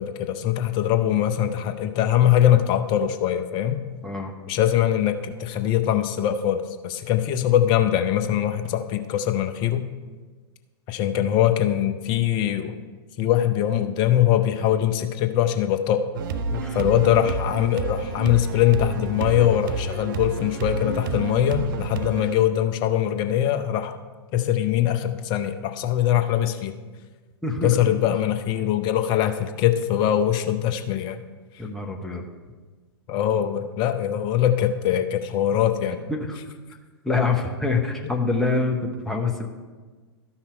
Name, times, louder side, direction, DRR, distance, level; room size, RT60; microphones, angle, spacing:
voice 1, 0.0-3.8 4.5-9.8 10.9-12.8 13.2-16.0 16.7-23.9 24.3-26.8 27.6-31.2 33.1-36.0, left 11 dB, 35° left, 8 dB, 0.7 m, -22 dB
voice 2, 4.0-4.3 16.5-16.8 27.4-27.8 31.6-32.2 36.1-36.4 37.0-39.5, left 3 dB, 5° left, 0 dB, 0.9 m, -25 dB
sound 1, 16.1-22.4, right 4 dB, 50° right, 0.6 m, -30 dB
13.0 x 5.8 x 4.4 m, 1.4 s
figure-of-eight pair, 110°, 14 cm